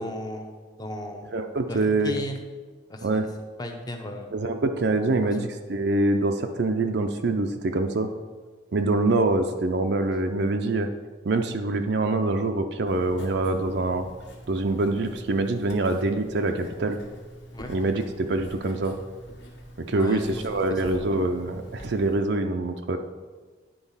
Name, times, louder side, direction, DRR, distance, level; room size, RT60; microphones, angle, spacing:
voice 1, 0.0-1.4 1.7-2.4 2.9-3.3 3.6-4.3 17.5-17.7 19.9-20.2 20.5-20.6 20.9-21.2, left 1 dB, 20° left, 3 dB, 0.8 m, -35 dB
voice 2, 1.3-2.1 3.0-3.3 4.3-8.1 8.7-10.9 11.2-14.1 14.5-17.0 17.7-18.9 19.8-23.0, right 2 dB, 60° right, 5 dB, 0.5 m, -25 dB
Writing, 12.9-22.2, equal, 65° left, 1.5 m, -45 dB
10.0 x 3.9 x 5.6 m, 1.4 s
head